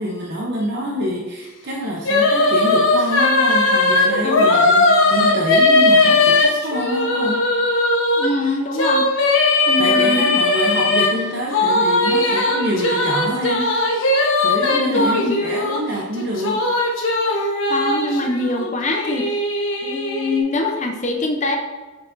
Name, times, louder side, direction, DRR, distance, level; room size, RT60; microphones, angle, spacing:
voice 1, 0.0-7.5 9.8-13.8 14.4-16.7, equal, 55° right, -2 dB, 0.8 m, -26 dB
sound 1, 2.0-8.3 8.7-11.1 11.5-15.8 16.2-20.4, left 2 dB, 80° left, 1.1 m, -18 dB
voice 2, 4.2-4.6 8.2-9.0 9.7-10.4 14.9-15.4 17.3-19.3 19.8-21.6, left 2 dB, 35° left, 2 dB, 0.7 m, -23 dB
7.2 x 7.2 x 2.6 m, 1.2 s
head